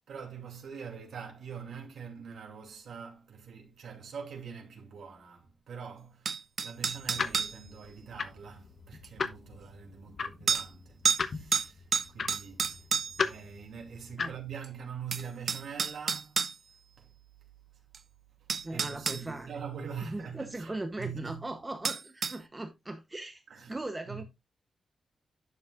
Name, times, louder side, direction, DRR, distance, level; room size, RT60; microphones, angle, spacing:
voice 1, 0.1-16.5 17.0-17.1 18.4-20.7 21.0-21.5 23.5-23.8 24.1-24.2, right 7 dB, 85° right, 2.6 m, -44 dB
sound 1, 6.2-7.6 9.0-9.1 10.5-10.7 11.0-11.2 11.5-13.3 14.6-14.7 15.1-16.5 17.9-18.0 18.5-19.2 21.8-22.4, right 6 dB, 50° right, 0.4 m, -30 dB
sound 2, 6.8-14.5, left 5 dB, 50° left, 0.8 m, -38 dB
voice 2, 18.6-19.5 20.0-24.2, right 2 dB, 20° right, 0.8 m, -39 dB
10.5 x 7.0 x 2.4 m
wide cardioid pair, 135°, 0 cm